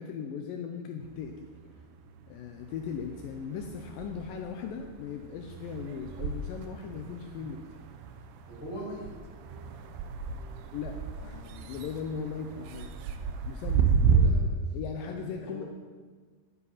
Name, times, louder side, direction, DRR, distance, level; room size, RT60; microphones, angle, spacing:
voice 1, 0.0-1.5 2.3-7.7 10.7-12.9 13.4-13.9 14.7-15.6, left 6 dB, 90° left, 4 dB, 2.0 m, -38 dB
sound 1, 1.0-2.3 2.6-14.3, right 6 dB, 80° right, 2.8 m, -32 dB
voice 2, 8.5-9.9 13.9-15.6, equal, 25° left, -4 dB, 1.8 m, -43 dB
12.5 x 9.6 x 4.2 m, 1.5 s
omnidirectional pair, 4.7 m